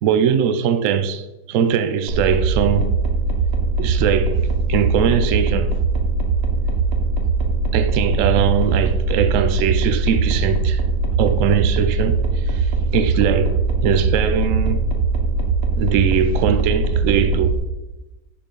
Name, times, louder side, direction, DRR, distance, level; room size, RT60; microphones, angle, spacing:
voice 1, 0.0-2.9 3.8-5.8 7.7-10.8 11.2-12.2 12.5-14.8 15.8-17.6, right 8 dB, 70° right, 0.7 m, -20 dB
sound 1, 2.1-17.6, right 4 dB, 40° right, 1.3 m, -21 dB
11.5 x 5.0 x 5.3 m
omnidirectional pair, 2.1 m